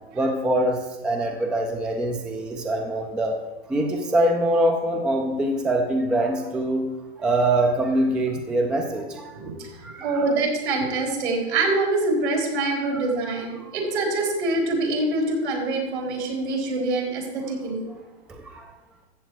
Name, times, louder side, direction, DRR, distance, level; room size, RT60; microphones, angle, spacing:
voice 1, 0.1-3.4 3.7-6.9 7.2-9.3 9.8-10.2 12.9-13.0 13.6-13.7 18.3-18.6, right 1 dB, 5° right, 2 dB, 0.3 m, -24 dB
voice 2, 9.3-9.7 10.0-17.8, right 2 dB, 80° right, 0 dB, 4.3 m, -25 dB
14.0 x 7.8 x 4.7 m, 1.1 s
hypercardioid pair, 155°, 33 cm